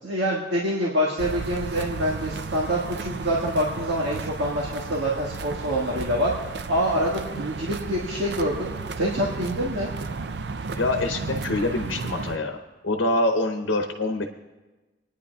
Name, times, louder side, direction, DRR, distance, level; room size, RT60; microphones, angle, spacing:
voice 1, 0.0-6.3 6.7-8.7 8.9-9.9, equal, 75° right, -5 dB, 1.8 m, -26 dB
sound 1, 1.2-12.4, right 4 dB, 60° right, 0.5 m, -34 dB
voice 2, 10.8-12.6 12.8-14.3, left 2 dB, 90° left, 4 dB, 0.9 m, -25 dB
28.0 x 10.0 x 2.4 m, 1.2 s
head